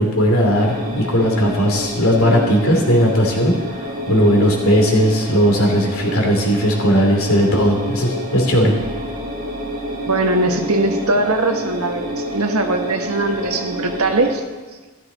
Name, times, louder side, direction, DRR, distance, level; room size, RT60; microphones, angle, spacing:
voice 1, 0.0-8.7, equal, 75° left, 0 dB, 2.8 m, -17 dB
sound 1, 0.5-14.4, equal, 40° right, 1.6 m, -28 dB
voice 2, 10.0-14.4, right 2 dB, 85° right, 5 dB, 1.3 m, -20 dB
13.5 x 13.0 x 4.1 m, 1.3 s
head